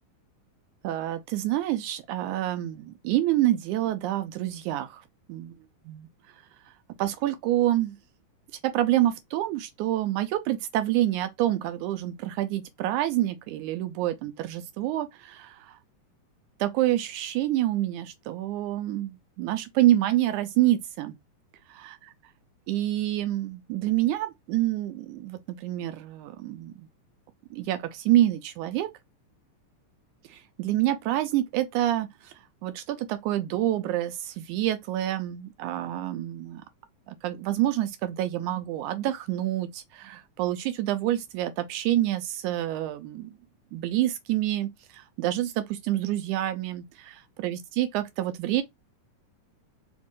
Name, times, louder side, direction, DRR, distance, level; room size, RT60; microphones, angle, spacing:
voice 1, 0.8-5.0 5.3-5.5 5.9-6.1 7.0-8.0 8.6-15.8 16.6-21.2 21.8-22.0 22.7-26.9 27.5-28.9 30.3-32.3 32.6-36.6 37.1-43.3 43.7-47.1 47.4-48.6, right 14 dB, 80° right, 1.9 m, -27 dB
5.0 x 2.4 x 3.6 m
omnidirectional pair, 3.7 m